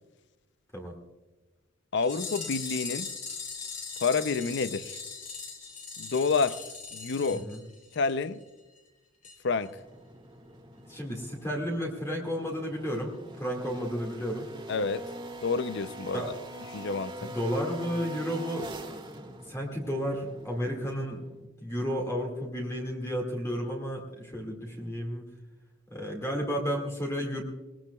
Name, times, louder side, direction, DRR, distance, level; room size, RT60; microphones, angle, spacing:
voice 1, 1.9-3.1 4.0-5.0 6.0-6.7 6.9-7.4 8.0-8.4 9.4-9.7 14.7-15.0 15.4-16.3 16.7-17.3, left 4 dB, 60° left, 0.6 m, -28 dB
sound 1, 2.0-8.1 8.4-8.5 8.8-8.9 9.2-9.4 9.6-9.7, left 5 dB, 40° left, 2.7 m, -39 dB
sound 2, 9.6-21.4, right 1 dB, 25° right, 1.8 m, -44 dB
voice 2, 10.9-13.1 13.4-14.5 16.1-16.3 17.2-18.7 19.5-21.2 21.6-25.3 25.9-27.4, equal, 15° left, 2.0 m, -32 dB
21.0 x 19.0 x 2.3 m
head